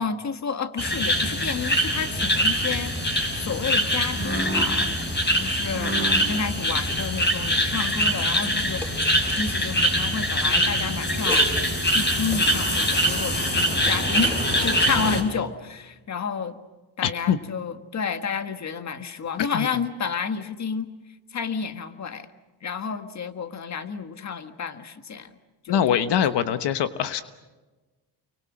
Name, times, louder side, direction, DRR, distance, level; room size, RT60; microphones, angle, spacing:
voice 1, 0.0-2.9 3.4-4.9 5.4-11.5 11.9-16.6 17.0-20.9 21.3-22.3 22.6-25.3 25.6-26.0, left 6 dB, 40° left, 9 dB, 1.7 m, -30 dB
sound 1, 0.8-15.2, equal, 25° left, 4.9 m, -23 dB
sound 2, 2.1-3.4 3.6-4.4 4.8-13.0 13.3-15.1, equal, 5° left, 7.0 m, -40 dB
voice 2, 17.0-17.4 19.5-19.7 25.7-27.2, left 9 dB, 80° left, 10 dB, 1.2 m, -23 dB
30.0 x 24.0 x 6.3 m, 1.2 s
cardioid pair, 120°, 41 cm